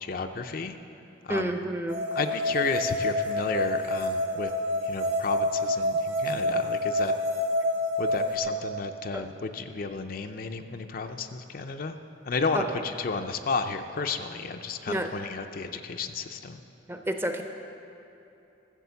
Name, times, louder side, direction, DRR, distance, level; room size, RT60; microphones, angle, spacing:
voice 1, 0.0-0.7 1.2-1.5 2.1-4.5 4.9-7.1 8.0-11.9 12.3-16.6, left 4 dB, 50° left, 6 dB, 0.5 m, -32 dB
voice 2, 1.3-2.0 9.1-9.3 12.5-12.7 14.9-15.1 16.9-17.4, right 1 dB, 10° right, 5 dB, 0.6 m, -30 dB
sound 1, 1.9-8.4, left 1 dB, 80° right, 1.6 m, -28 dB
14.0 x 7.1 x 6.9 m, 3.0 s
head